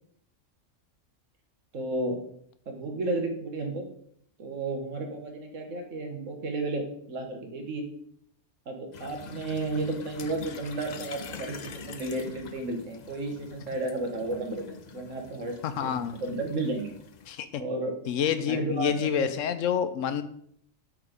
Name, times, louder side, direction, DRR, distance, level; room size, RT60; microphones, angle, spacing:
voice 1, 1.7-2.2 2.7-3.9 4.4-7.8 8.7-16.9 17.6-18.0 18.5-19.3, right 2 dB, 75° right, 4 dB, 1.5 m, -33 dB
sound 1, 8.9-17.3, left 6 dB, 50° left, 0.5 m, -45 dB
voice 2, 15.6-16.2 17.3-17.6 18.1-20.2, left 8 dB, 75° left, 11 dB, 1.0 m, -28 dB
8.2 x 3.9 x 5.0 m, 0.67 s
omnidirectional pair, 1.3 m